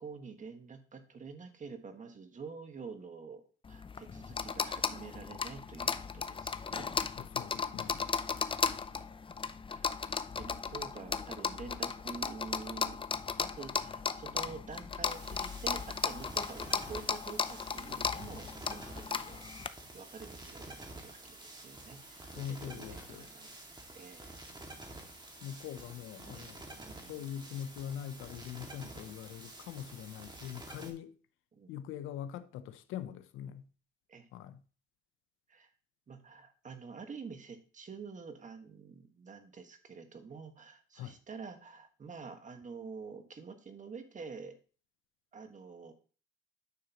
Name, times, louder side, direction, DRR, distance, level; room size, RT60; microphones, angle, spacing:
voice 1, 0.0-3.4 3.7-6.9 8.9-9.1 9.7-9.9 10.3-13.0 13.4-19.4 19.9-23.6 23.9-24.3 26.2-26.5 26.8-27.3 31.5-31.7 34.1-34.3 35.5-35.7 36.1-44.5 45.3-45.9, right 5 dB, 40° right, 1.5 m, -47 dB
sound 1, 3.6-19.7, left 5 dB, 25° left, 0.5 m, -36 dB
voice 2, 7.2-8.0 22.2-23.3 25.4-26.6 27.1-31.2 31.7-33.7 34.3-34.6 41.0-41.2, left 9 dB, 90° left, 0.7 m, -43 dB
sound 2, 15.0-30.9, right 2 dB, 20° right, 2.0 m, -49 dB
9.5 x 6.4 x 2.9 m
cardioid pair, 90°, 20 cm